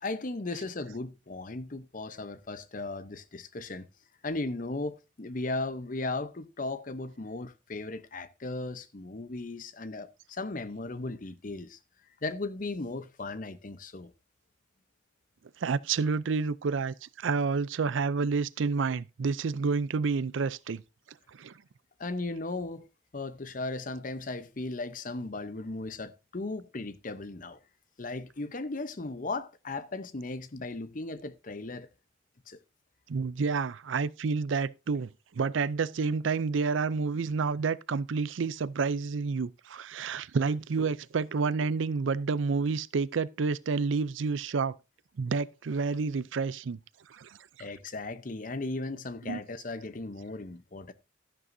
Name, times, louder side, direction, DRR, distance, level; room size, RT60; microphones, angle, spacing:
voice 1, 0.0-3.9 4.2-11.8 12.2-14.1 22.0-22.9 23.1-27.6 28.0-31.9 32.5-32.6 47.6-50.9, left 2 dB, 45° left, 0.8 m, -36 dB
voice 2, 15.6-20.8 21.3-21.5 33.1-44.8 45.2-46.8 47.1-47.4 49.3-49.4, right 4 dB, 80° right, 0.5 m, -29 dB
12.5 x 11.0 x 2.7 m
head